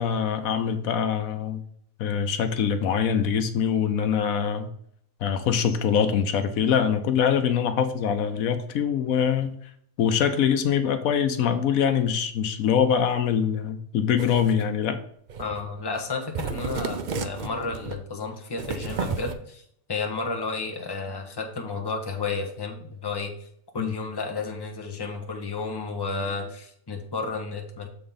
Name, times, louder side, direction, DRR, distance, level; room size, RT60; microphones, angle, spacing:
voice 1, 0.0-1.6 2.0-4.7 5.2-9.6 10.0-15.0 23.8-23.9, left 7 dB, 85° left, 9 dB, 1.2 m, -24 dB
sound 1, 14.2-14.6 15.3-15.7 16.0-16.1 16.3-18.0 18.6-19.3, right 5 dB, 60° right, 0.4 m, -32 dB
voice 2, 15.4-19.6 19.9-23.3 23.7-27.9, left 4 dB, 20° left, 3 dB, 0.9 m, -32 dB
6.9 x 3.8 x 5.6 m, 0.67 s
omnidirectional pair, 1.5 m